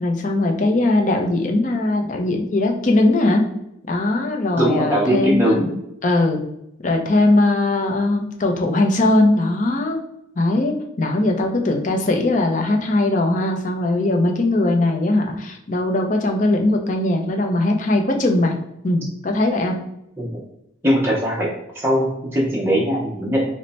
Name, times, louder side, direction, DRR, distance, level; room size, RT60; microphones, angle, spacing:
voice 1, 0.0-3.4 3.9-5.6 6.0-6.5 6.8-10.0 10.4-18.5 18.8-19.7, left 2 dB, 40° left, 3 dB, 0.5 m, -20 dB
voice 2, 4.6-5.8 20.2-20.4 20.8-23.5, equal, 10° right, -5 dB, 0.6 m, -20 dB
3.1 x 2.1 x 4.0 m, 0.81 s
head